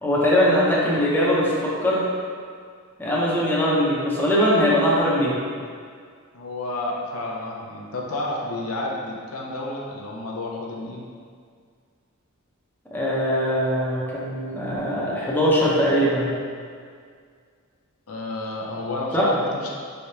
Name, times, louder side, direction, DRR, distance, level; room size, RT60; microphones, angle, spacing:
voice 1, 0.0-2.0 3.0-5.4 12.9-16.3 19.1-19.3, equal, 10° left, -7 dB, 0.7 m, -21 dB
voice 2, 6.3-11.0 18.1-19.7, left 2 dB, 85° left, -2 dB, 0.6 m, -31 dB
4.6 x 3.4 x 2.8 m, 2.1 s
head